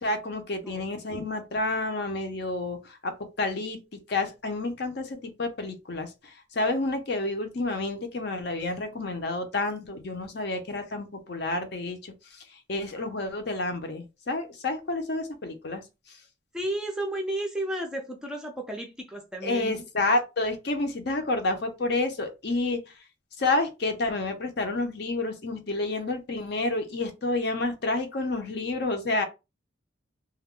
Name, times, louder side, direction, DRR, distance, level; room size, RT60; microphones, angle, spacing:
voice 1, 0.0-3.1 3.4-3.8 4.1-12.4 12.7-15.8 19.4-22.8 23.4-29.2, left 2 dB, 55° left, 0.6 m, -29 dB
voice 2, 16.5-19.9, right 1 dB, 5° right, 0.4 m, -33 dB
2.3 x 2.1 x 3.6 m
head